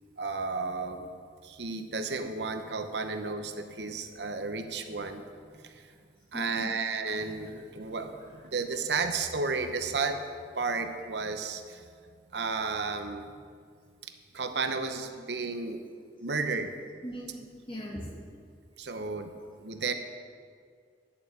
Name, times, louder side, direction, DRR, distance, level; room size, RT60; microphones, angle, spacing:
voice 1, 0.2-1.1 1.4-5.2 5.6-5.8 6.3-10.3 10.5-11.8 12.3-13.3 14.0-15.8 16.2-16.7 18.8-19.3 19.6-19.9, right 4 dB, 80° right, 7 dB, 0.9 m, -33 dB
voice 2, 6.3-6.8 7.5-7.6 17.0-18.2, equal, 30° left, -3 dB, 2.3 m, -40 dB
11.0 x 7.0 x 8.2 m, 2.1 s
head